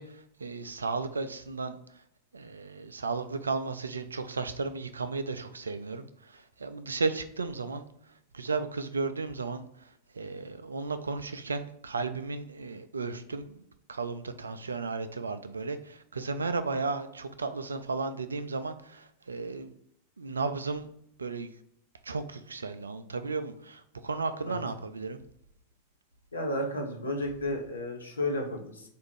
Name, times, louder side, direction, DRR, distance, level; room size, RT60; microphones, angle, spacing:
voice 1, 0.0-1.8 2.3-7.9 8.3-13.6 13.9-19.7 20.2-20.9 21.2-21.5 22.0-25.2, right 4 dB, 75° right, 11 dB, 0.4 m, -34 dB
voice 2, 26.3-28.8, left 1 dB, 75° left, 1 dB, 0.9 m, -32 dB
4.3 x 2.5 x 4.8 m, 0.73 s
figure-of-eight pair, 90°, 0 cm